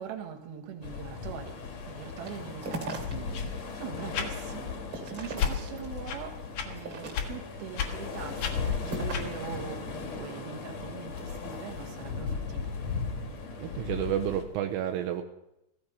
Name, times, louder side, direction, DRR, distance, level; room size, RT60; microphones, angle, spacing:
voice 1, 0.0-1.6 1.9-12.7, right 8 dB, 60° right, 3.1 m, -42 dB
sound 1, 0.8-14.4, left 5 dB, 60° left, 1.8 m, -37 dB
sound 2, 2.2-3.4 3.8-6.1 6.7-7.5 8.0-9.4, right 2 dB, 30° right, 2.7 m, -39 dB
sound 3, 3.3-3.5 4.1-4.3 5.4-5.6 6.1-6.2 6.5-6.7 7.1-7.3 7.7-7.9 8.4-8.5 9.1-9.3, left 8 dB, 85° left, 1.6 m, -31 dB
voice 2, 13.6-15.2, right 10 dB, 80° right, 3.2 m, -30 dB
15.5 x 15.5 x 5.3 m
omnidirectional pair, 5.8 m